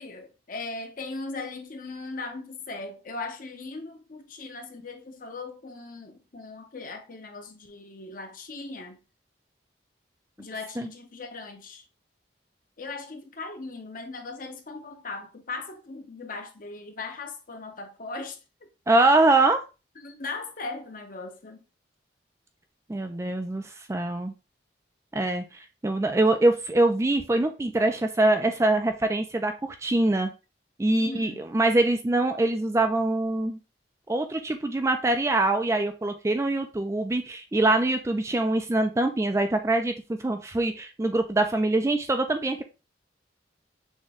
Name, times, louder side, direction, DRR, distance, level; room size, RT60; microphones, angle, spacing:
voice 1, 0.0-9.0 10.4-11.8 12.8-18.7 20.0-21.6 30.9-31.5, left 3 dB, 45° left, 0.7 m, -38 dB
voice 2, 18.9-19.6 22.9-24.3 25.1-30.3 30.8-33.6 34.1-39.9 40.2-42.6, right 2 dB, 15° right, 0.3 m, -24 dB
6.3 x 2.2 x 3.5 m
head